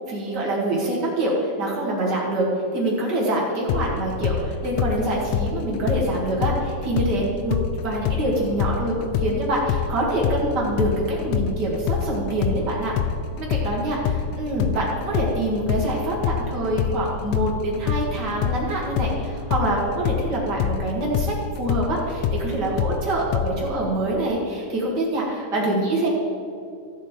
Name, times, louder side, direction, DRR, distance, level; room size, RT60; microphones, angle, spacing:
voice 1, 0.1-2.5 2.7-12.9 13.4-26.1, right 1 dB, 75° right, -3 dB, 0.9 m, -25 dB
sound 1, 3.7-7.2 7.5-15.4 15.7-23.5, left 8 dB, 85° left, 2.2 m, -25 dB
15.0 x 7.5 x 4.4 m, 2.5 s
omnidirectional pair, 4.7 m